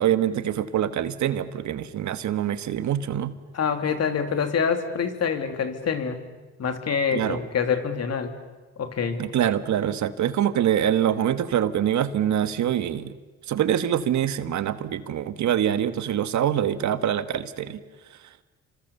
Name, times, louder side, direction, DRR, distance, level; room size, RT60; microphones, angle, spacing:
voice 1, 0.0-3.3 7.1-7.4 9.2-13.1 13.5-17.8, right 10 dB, 70° right, 12 dB, 1.4 m, -24 dB
voice 2, 3.5-6.2 6.6-8.4 8.8-9.2, left 6 dB, 55° left, 7 dB, 2.9 m, -26 dB
30.0 x 25.5 x 7.1 m, 1.3 s
cardioid pair, 90°, 30 cm